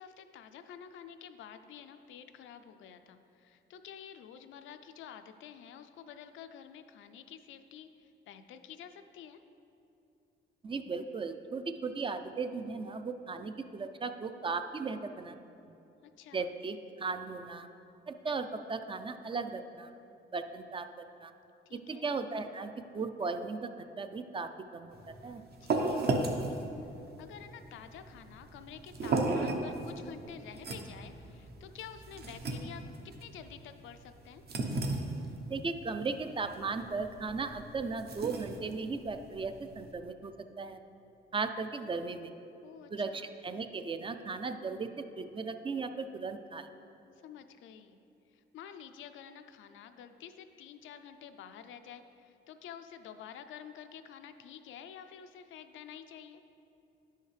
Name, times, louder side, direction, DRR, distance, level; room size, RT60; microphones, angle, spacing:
voice 1, 0.0-7.9 8.3-9.4 16.2-16.4 21.7-22.1 25.6-26.5 27.2-32.8 33.2-34.4 42.6-43.2 47.2-48.0 48.5-52.0 52.5-56.4, left 8 dB, 75° left, 9 dB, 0.5 m, -49 dB
voice 2, 10.6-15.4 16.3-17.7 18.1-19.9 20.3-20.9 21.2-21.3 21.9-23.7 24.0-25.0 25.2-25.4 35.5-40.8 41.3-42.3 42.9-46.7, right 4 dB, 25° right, 8 dB, 0.4 m, -36 dB
sound 1, 24.9-39.9, right 2 dB, 55° right, 0.8 m, -36 dB
9.8 x 5.6 x 3.3 m, 2.7 s
cardioid pair, 90°, 20 cm